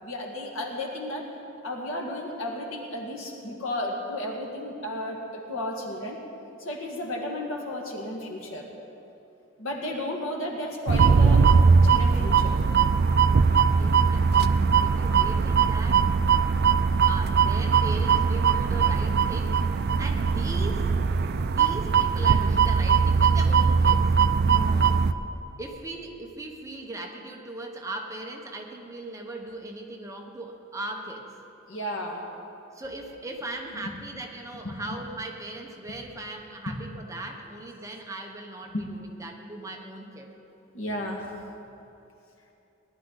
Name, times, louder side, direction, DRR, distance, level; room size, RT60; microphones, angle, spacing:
voice 1, 0.0-1.3 1.6-6.2 6.6-8.7 9.6-11.4 11.8-12.6 24.4-24.9 31.7-32.2 33.8-33.9 34.6-35.0 36.7-36.8 38.7-38.9 40.7-41.3, left 1 dB, 85° left, 0 dB, 1.9 m, -33 dB
sound 1, 10.9-25.1, right 5 dB, 50° right, 0.4 m, -21 dB
voice 2, 13.8-16.1 17.1-19.6 20.0-21.0 21.4-24.1 25.6-31.3 32.7-40.3, right 2 dB, 15° right, 2 dB, 1.0 m, -39 dB
18.5 x 11.0 x 4.1 m, 2.8 s
head